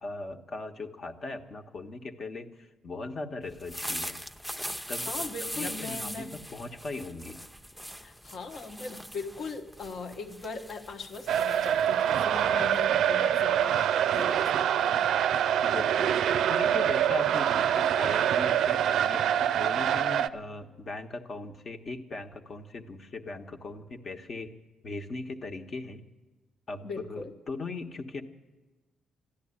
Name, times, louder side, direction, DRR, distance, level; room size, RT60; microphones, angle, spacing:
voice 1, 0.0-4.2 4.9-5.1 5.5-7.4 13.5-13.6 15.6-16.1 16.5-24.5 24.8-26.0 26.7-28.2, left 3 dB, 50° left, 5 dB, 1.2 m, -39 dB
sound 1, 3.5-12.8, equal, 5° left, 0.7 m, -40 dB
voice 2, 4.9-6.4 8.0-15.1 26.8-27.3, left 3 dB, 65° left, 5 dB, 1.3 m, -39 dB
sound 2, 11.3-20.3, right 10 dB, 75° right, 0.4 m, -25 dB
13.5 x 10.5 x 9.8 m, 1.2 s
cardioid pair, 75°, 0 cm